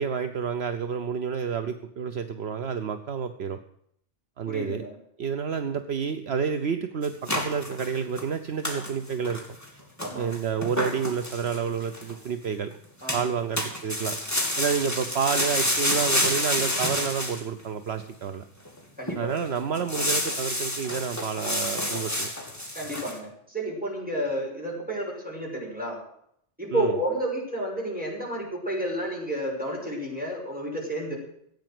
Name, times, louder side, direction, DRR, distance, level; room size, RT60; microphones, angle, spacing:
voice 1, 0.0-3.6 4.4-4.8 5.2-9.4 10.1-12.7 13.1-14.2 14.6-18.5 19.2-22.3 26.7-26.9, right 6 dB, 65° right, 8 dB, 1.1 m, -29 dB
voice 2, 4.5-4.9 10.0-10.3 13.0-13.2 19.0-19.3 22.7-26.0 26.6-31.2, right 1 dB, 5° right, -2 dB, 5.9 m, -31 dB
sound 1, 7.0-8.3 8.6-8.9 9.2-9.7 10.0-12.1 13.1-13.3 13.6-17.4 18.0-18.1 18.6-18.8 19.1-19.4 19.7-23.2, left 1 dB, 15° left, 2.6 m, -29 dB
15.5 x 9.0 x 7.7 m, 0.71 s
omnidirectional pair, 1.2 m